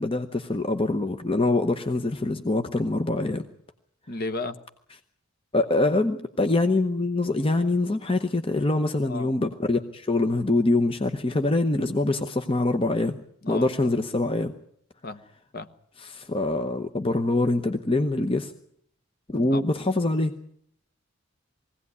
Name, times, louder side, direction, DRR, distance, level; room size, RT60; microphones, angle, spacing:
voice 1, 0.0-3.4 5.5-13.2 13.5-14.5 16.0-18.5 19.3-20.3, left 2 dB, 25° left, 8 dB, 0.8 m, -24 dB
voice 2, 4.1-4.6 9.1-9.3 13.4-13.7 15.0-15.2 15.5-15.7 19.5-19.6, left 2 dB, 45° left, 10 dB, 1.1 m, -33 dB
21.0 x 17.0 x 9.6 m, 0.69 s
head